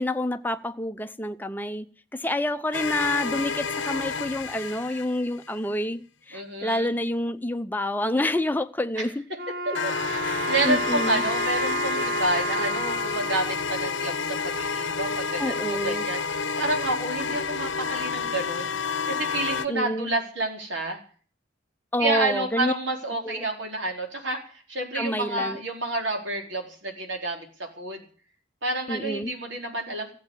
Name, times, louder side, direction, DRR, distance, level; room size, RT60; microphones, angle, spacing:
voice 1, 0.0-1.9 2.1-9.2 10.3-11.2 15.4-16.1 19.7-20.1 21.9-22.7 23.2-23.4 24.9-25.6 28.9-29.3, left 1 dB, 10° left, 0.8 m, -28 dB
sound 1, 2.7-5.5 9.7-19.7, left 5 dB, 70° left, 0.9 m, -30 dB
voice 2, 6.3-6.9 9.0-9.1 9.7-21.0 22.0-28.0 28.6-30.1, right 2 dB, 70° right, 4.3 m, -29 dB
Wind instrument woodwind instrument, 9.3-14.5, right 2 dB, 50° right, 0.9 m, -31 dB
15.0 x 8.5 x 9.8 m
head